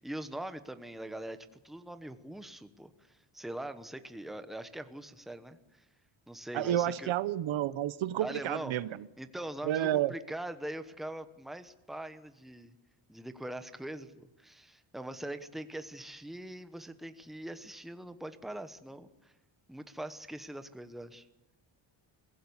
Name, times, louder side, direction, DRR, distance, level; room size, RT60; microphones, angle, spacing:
voice 1, 0.0-1.4 1.6-5.8 6.3-7.1 8.2-8.7 9.2-12.8 13.1-19.3 19.7-21.2, right 1 dB, ahead, 1.0 m, -42 dB
voice 2, 6.5-9.1 9.6-10.1, right 12 dB, 70° right, 0.9 m, -30 dB
23.0 x 16.5 x 9.7 m
wide cardioid pair, 155°, 48 cm